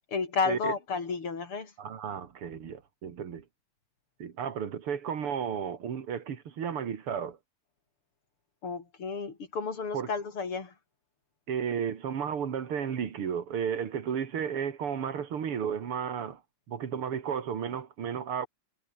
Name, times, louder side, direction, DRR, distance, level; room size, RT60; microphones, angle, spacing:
voice 1, 0.1-1.7 8.6-10.7, left 5 dB, 80° left, 4.6 m, -32 dB
voice 2, 1.8-3.4 4.2-7.4 9.9-10.1 11.5-16.4 16.7-18.5, right 7 dB, 90° right, 2.9 m, -33 dB
omnidirectional pair, 2.4 m